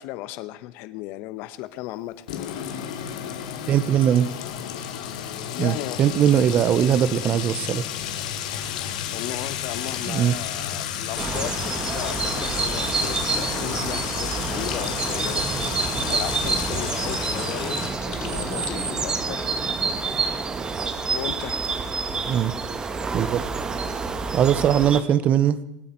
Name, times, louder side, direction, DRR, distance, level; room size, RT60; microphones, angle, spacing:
voice 1, 0.0-2.2 5.5-6.0 8.5-19.5 21.1-21.8, left 15 dB, 60° left, 14 dB, 1.0 m, -36 dB
Sink (filling or washing) / Trickle dribble / Fill (with liquid), 2.3-19.7, left 9 dB, 80° left, 2.4 m, -32 dB
voice 2, 3.7-4.3 5.6-7.8 10.0-10.4 22.2-22.5 23.1-23.4 24.3-25.6, right 9 dB, 40° right, 16 dB, 0.8 m, -20 dB
sound 1, 11.2-25.0, right 4 dB, 20° right, 1.2 m, -28 dB
25.5 x 9.4 x 4.5 m, 0.88 s
supercardioid pair, 115°, 4 cm